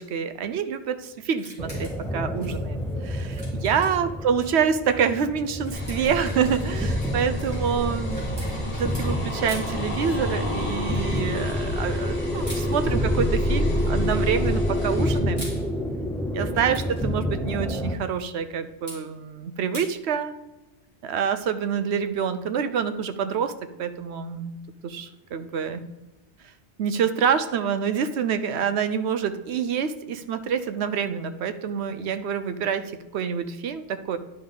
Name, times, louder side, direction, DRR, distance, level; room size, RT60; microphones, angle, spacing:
voice 1, 0.0-15.5 16.3-20.3 21.0-23.5 23.8-24.6 24.8-25.8 26.8-34.2, right 7 dB, 75° right, 11 dB, 0.9 m, -27 dB
sound 1, 1.3-2.1 2.4-4.5 4.9-5.0 5.4-9.1 9.4-9.8 10.9-11.3 12.4-12.7 13.8-14.3 15.1-15.6 16.5-17.0 18.9-19.0 19.7-19.9, equal, 30° right, 2.7 m, -43 dB
sound 2, 1.6-18.0, equal, 5° left, 0.4 m, -29 dB
sound 3, 5.7-15.2, left 1 dB, 30° left, 1.4 m, -29 dB
10.0 x 5.3 x 3.8 m, 1.0 s
omnidirectional pair, 1.1 m